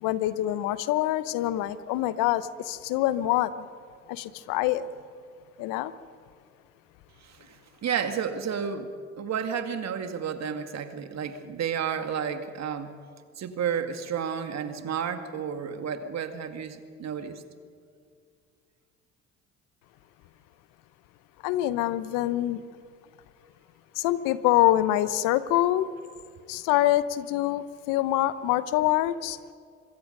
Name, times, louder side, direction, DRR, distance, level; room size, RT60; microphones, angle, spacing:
voice 1, 0.0-3.7 4.1-4.9 5.6-5.9 21.4-22.6 24.0-25.9 26.5-29.4, left 14 dB, 75° left, 15 dB, 1.0 m, -25 dB
voice 2, 7.2-8.9 9.2-13.0 13.4-17.4, right 7 dB, 55° right, 8 dB, 2.1 m, -31 dB
25.5 x 22.0 x 5.4 m, 2.3 s
hypercardioid pair, 60°, 32 cm